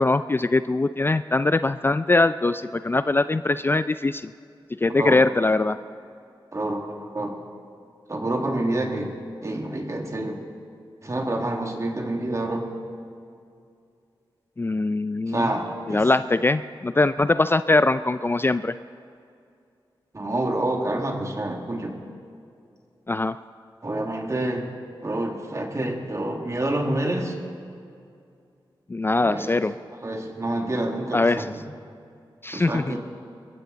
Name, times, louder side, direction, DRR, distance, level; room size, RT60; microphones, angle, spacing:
voice 1, 0.0-4.3 4.8-5.8 14.6-15.5 15.9-18.7 23.1-23.4 28.9-29.7 31.1-31.5 32.4-33.0, left 2 dB, 25° left, 13 dB, 0.3 m, -22 dB
voice 2, 6.5-7.4 8.1-9.1 9.4-10.4 11.0-12.7 15.3-16.1 20.1-22.0 23.8-24.7 25.0-27.4 29.2-29.5 30.0-31.5 32.5-33.0, right 1 dB, 35° right, 2 dB, 2.1 m, -27 dB
22.5 x 15.0 x 4.0 m, 2.4 s
cardioid pair, 55°, 9 cm